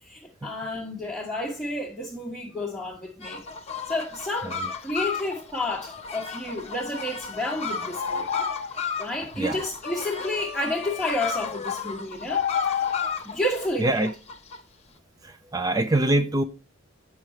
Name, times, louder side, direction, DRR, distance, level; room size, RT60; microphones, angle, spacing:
voice 1, 0.0-3.4 3.8-8.4 8.8-12.5 13.2-14.1, left 1 dB, ahead, 1.3 m, -31 dB
sound 1, 3.2-14.6, left 5 dB, 30° left, 0.9 m, -34 dB
sound 2, 7.9-8.9 11.7-11.8 12.3-13.2, left 8 dB, 50° left, 0.4 m, -28 dB
voice 2, 13.8-14.1 15.2-16.4, right 2 dB, 20° right, 0.4 m, -24 dB
8.7 x 5.6 x 3.1 m
head